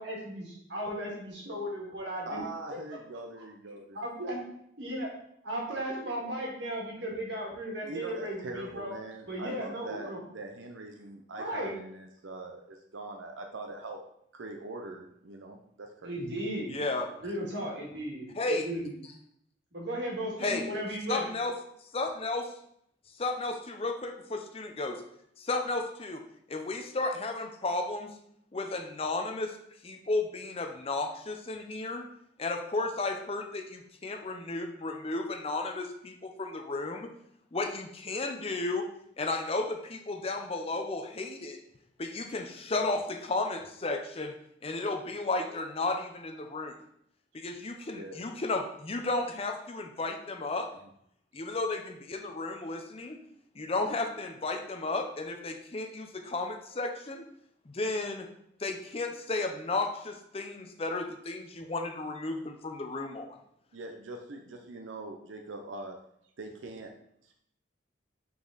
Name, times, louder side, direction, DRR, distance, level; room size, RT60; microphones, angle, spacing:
voice 1, 0.0-2.4 2.7-3.0 3.4-4.4 4.8-5.1 5.4-8.9 9.3-10.2 11.3-11.8 16.0-16.8 17.2-18.9 19.7-21.3, equal, 65° right, -2 dB, 1.9 m, -36 dB
voice 2, 2.2-4.0 7.9-14.0 14.3-16.2 47.9-48.2 63.7-66.0 66.4-66.9 67.2-67.4, right 2 dB, 90° right, 3 dB, 0.7 m, -42 dB
voice 3, 16.7-17.1 18.4-18.7 20.4-20.7 21.1-21.5 21.9-22.5 23.2-25.0 25.4-26.2 26.5-28.1 28.5-29.5 29.8-32.1 32.4-37.1 37.5-38.9 39.2-41.6 42.0-44.3 44.6-46.7 47.3-50.7 51.3-53.2 53.6-57.2 57.7-58.3 58.6-63.3, left 2 dB, 30° left, 5 dB, 0.6 m, -33 dB
5.6 x 4.2 x 3.9 m, 0.72 s
head